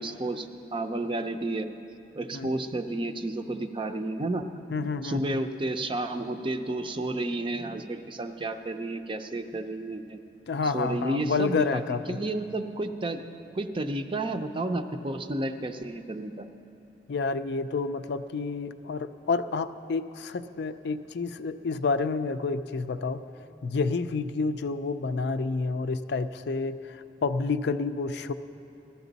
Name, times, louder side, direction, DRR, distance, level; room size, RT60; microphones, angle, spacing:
voice 1, 0.0-1.7 2.1-4.4 5.0-10.2 10.7-11.8 12.1-13.3 13.5-16.5, right 2 dB, 30° right, 7 dB, 0.5 m, -31 dB
voice 2, 4.7-5.4 10.5-12.2 17.1-23.2 23.6-28.3, left 4 dB, 65° left, 10 dB, 0.4 m, -29 dB
18.0 x 12.5 x 4.0 m, 3.0 s
head